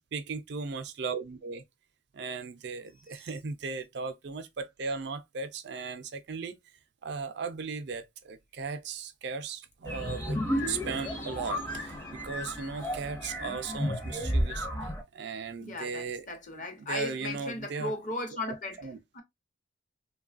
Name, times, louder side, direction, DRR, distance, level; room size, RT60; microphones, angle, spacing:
voice 1, 0.1-1.6 2.1-6.6 7.0-16.3 16.9-17.9 18.8-19.0, right 4 dB, 60° right, 0.4 m, -37 dB
sound 1, 9.8-15.0, equal, 15° left, 0.6 m, -32 dB
voice 2, 15.6-18.9 19.1-19.2, left 2 dB, 45° left, 0.8 m, -37 dB
3.0 x 2.2 x 2.4 m
head